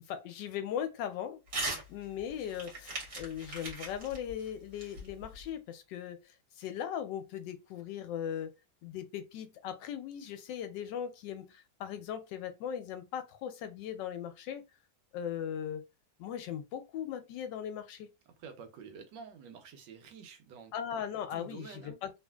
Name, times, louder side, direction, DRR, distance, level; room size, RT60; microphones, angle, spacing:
voice 1, 0.0-1.4 1.9-6.2 6.6-8.5 8.8-14.6 15.1-15.8 16.2-18.1 20.7-22.1, left 9 dB, 90° left, 1.3 m, -38 dB
Crumpling crinkling / Tearing, 1.5-1.8 2.2-5.5, right 2 dB, 50° right, 1.4 m, -39 dB
voice 2, 18.4-20.7 21.3-22.0, right 6 dB, 90° right, 1.4 m, -49 dB
3.1 x 2.4 x 2.3 m
omnidirectional pair, 1.9 m